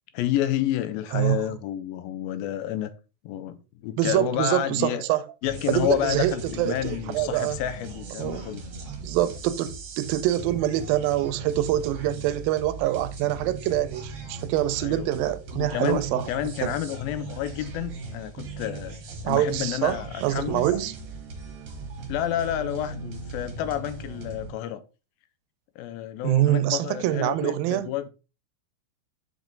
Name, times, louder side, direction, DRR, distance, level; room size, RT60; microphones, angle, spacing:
voice 1, 0.1-2.9 3.2-5.0 5.4-8.6 14.8-19.0 19.2-20.8 22.1-24.8 25.8-28.1, left 12 dB, 85° left, 2.4 m, -30 dB
voice 2, 4.0-5.2 5.7-7.6 8.2-8.5 9.0-16.3 16.6-16.7 19.3-20.9 26.2-27.9, right 13 dB, 85° right, 2.3 m, -25 dB
sound 1, 5.4-24.5, right 3 dB, 55° right, 1.5 m, -39 dB
6.0 x 5.3 x 3.8 m
omnidirectional pair, 4.1 m